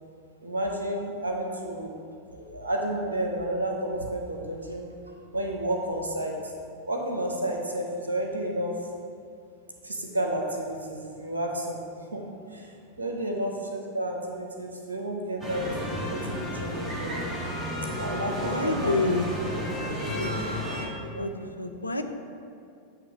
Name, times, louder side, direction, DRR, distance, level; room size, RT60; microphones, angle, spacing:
voice 1, 0.4-1.9 2.3-4.9 5.3-6.5 6.9-8.8 9.8-11.8 12.1-12.2 12.5-17.2 18.0-18.5 18.8-18.9 21.1-21.2, right 1 dB, 75° right, 1 dB, 0.8 m, -31 dB
sound 1, 15.4-20.9, equal, 10° right, 1.4 m, -32 dB
voice 2, 18.4-19.3 20.0-20.3 21.2-21.3 21.6-22.0, left 3 dB, 85° left, 6 dB, 0.4 m, -28 dB
8.6 x 3.2 x 4.9 m, 2.4 s
figure-of-eight pair, 90°, 0 cm